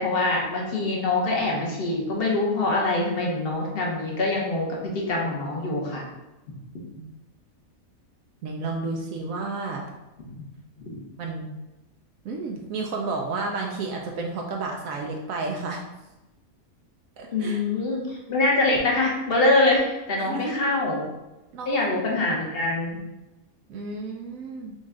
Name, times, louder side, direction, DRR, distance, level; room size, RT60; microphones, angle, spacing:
voice 1, 0.0-6.0 10.3-10.5 10.9-11.0 17.3-21.1 21.7-23.0, left 2 dB, 45° left, -2 dB, 1.2 m, -24 dB
voice 2, 8.4-9.9 11.2-11.6 12.2-15.8 17.2-17.6 20.2-20.6 21.5-21.9 23.7-24.7, right 3 dB, 75° right, 1 dB, 1.0 m, -31 dB
5.4 x 2.4 x 3.7 m, 1.0 s
omnidirectional pair, 1.5 m